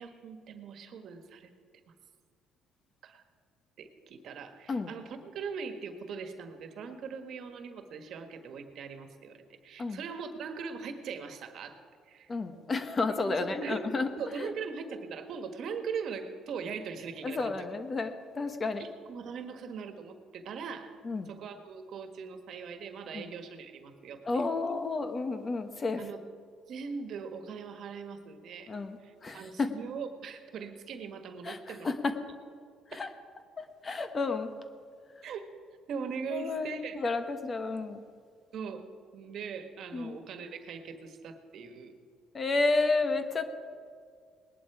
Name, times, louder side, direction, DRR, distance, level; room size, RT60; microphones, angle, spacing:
voice 1, 0.0-1.5 3.0-3.2 3.8-11.8 12.1-12.3 13.3-17.5 18.8-21.0 21.2-24.4 26.0-26.2 26.7-28.7 29.0-31.9 32.9-33.0 35.2-35.5 35.9-37.0 38.5-38.9 39.1-41.9, right 5 dB, 65° right, 7 dB, 1.5 m, -40 dB
voice 2, 12.3-14.1 14.4-14.5 17.2-18.8 21.0-21.3 23.1-23.3 24.2-26.0 28.7-29.7 31.4-32.1 32.9-33.1 33.6-34.5 36.3-38.0 39.9-40.2 42.3-43.4, left 3 dB, 30° left, 8 dB, 1.2 m, -31 dB
19.5 x 11.0 x 4.8 m, 2.1 s
cardioid pair, 95°, 0 cm